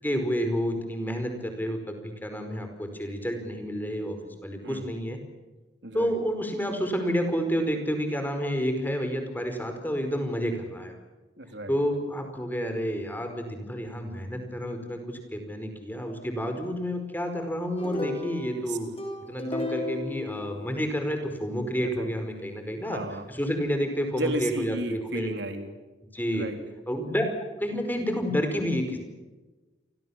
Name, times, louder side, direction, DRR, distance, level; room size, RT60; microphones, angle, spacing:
voice 1, 0.0-4.2 4.4-5.2 5.9-10.9 11.7-18.9 19.2-23.0 23.3-25.3 26.1-26.4 26.9-27.2 27.6-29.0, equal, 10° left, 6 dB, 4.9 m, -29 dB
voice 2, 5.8-6.1 11.4-11.8 18.5-18.8 22.0-22.2 22.8-23.2 24.1-25.7 26.3-26.6, right 1 dB, 70° right, 6 dB, 3.4 m, -33 dB
sound 1, 17.8-21.2, left 2 dB, 30° left, 6.1 m, -34 dB
29.5 x 24.5 x 7.3 m, 1.2 s
head